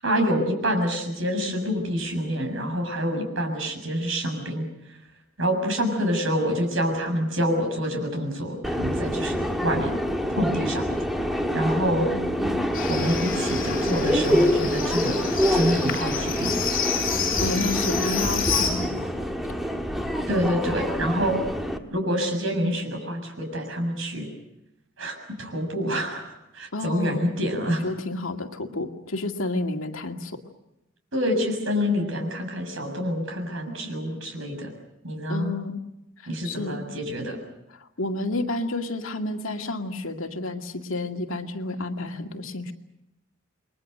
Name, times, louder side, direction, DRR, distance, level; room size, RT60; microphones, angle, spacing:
voice 1, 0.0-4.7 5.4-10.0 10.4-10.9 11.5-12.1 12.9-15.2 15.5-16.6 20.3-21.4 21.9-24.3 25.0-27.9 31.1-34.7 35.0-35.5 36.3-37.4, equal, 70° right, 4 dB, 7.0 m, -27 dB
Subway metro underground, 8.6-21.8, equal, ahead, 1.7 m, -26 dB
voice 2, 12.0-12.6 17.4-19.1 26.7-27.3 27.7-30.4 35.3-35.8 36.2-36.8 37.8-42.7, left 2 dB, 80° left, 4 dB, 2.3 m, -30 dB
Livestock farm animals working animals, 12.7-18.7, left 6 dB, 45° left, 7.5 m, -29 dB
29.5 x 22.5 x 6.7 m, 0.87 s
head